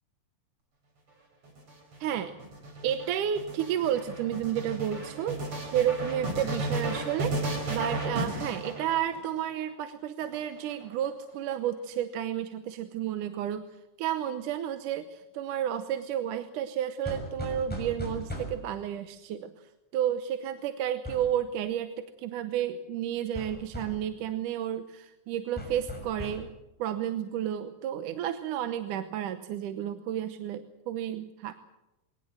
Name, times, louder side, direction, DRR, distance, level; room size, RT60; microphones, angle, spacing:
sound 1, 1.5-9.4 10.2-11.1, right 2 dB, 40° right, 4.5 m, -34 dB
voice 1, 2.0-2.4 2.8-13.7 14.0-19.5 19.9-21.9 22.2-26.5 26.8-31.5, right 10 dB, 75° right, 9 dB, 2.4 m, -31 dB
sound 2, 17.1-18.8 21.1-21.3 23.4-24.1 25.6-26.5, equal, 5° left, 6.0 m, -38 dB
22.0 x 18.0 x 7.6 m, 0.95 s
omnidirectional pair, 3.8 m